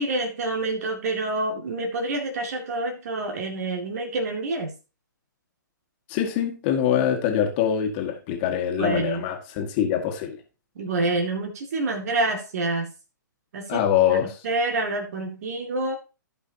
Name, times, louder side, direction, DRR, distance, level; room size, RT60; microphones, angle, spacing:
voice 1, 0.0-4.7 8.8-9.2 10.8-12.9 13.5-16.0, right 2 dB, 50° right, 2.3 m, -27 dB
voice 2, 6.1-10.4 13.7-14.4, left 9 dB, 30° left, 2.1 m, -24 dB
15.5 x 5.5 x 2.9 m
figure-of-eight pair, 125°, 11 cm